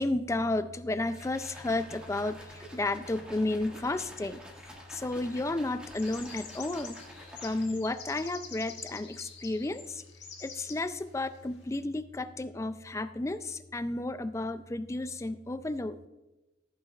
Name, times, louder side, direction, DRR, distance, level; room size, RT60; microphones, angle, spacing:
voice 1, 0.0-4.4 4.9-7.0 7.4-10.0 10.4-16.0, left 2 dB, 15° left, 12 dB, 0.3 m, -32 dB
sound 1, 1.0-7.9, equal, 5° right, 1.8 m, -49 dB
sound 2, 5.9-10.8, left 6 dB, 80° left, 1.6 m, -46 dB
15.5 x 8.8 x 2.4 m, 1.1 s
head